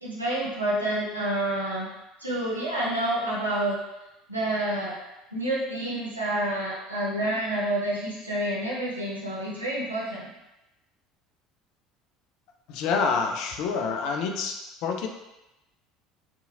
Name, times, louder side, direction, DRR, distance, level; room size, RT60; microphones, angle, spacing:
voice 1, 0.0-1.9 2.2-3.8 4.3-4.9 5.3-10.3, right 1 dB, 90° right, -6 dB, 0.7 m, -28 dB
voice 2, 12.7-15.1, left 5 dB, 55° left, 3 dB, 0.3 m, -27 dB
2.7 x 2.4 x 2.6 m, 0.97 s
figure-of-eight pair, 65°, 0 cm